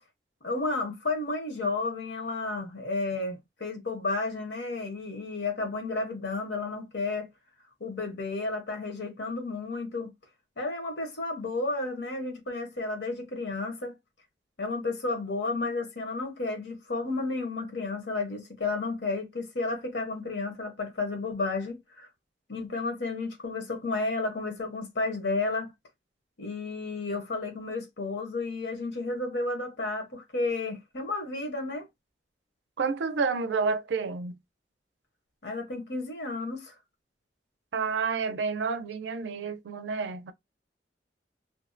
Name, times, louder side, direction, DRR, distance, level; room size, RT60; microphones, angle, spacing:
voice 1, 0.4-7.3 7.8-10.1 10.6-13.9 14.6-22.1 22.5-25.7 26.4-31.9 35.4-36.7, left 3 dB, 75° left, 0.9 m, -32 dB
voice 2, 32.8-34.4 37.7-40.3, right 5 dB, 80° right, 0.4 m, -29 dB
2.6 x 2.0 x 2.5 m
head